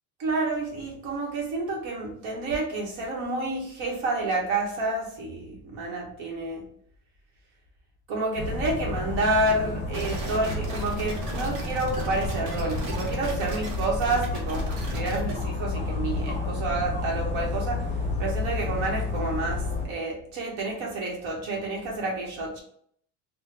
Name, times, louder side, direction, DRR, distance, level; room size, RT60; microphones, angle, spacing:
voice 1, 0.2-6.6 8.1-17.8 18.2-22.6, right 2 dB, 70° right, -2 dB, 1.1 m, -29 dB
Dog, 8.3-19.9, left 3 dB, 15° left, 0.6 m, -31 dB
sound 1, 9.9-15.3, right 2 dB, 50° right, 0.8 m, -36 dB
3.6 x 2.2 x 2.9 m, 0.65 s
cardioid pair, 165°, 48 cm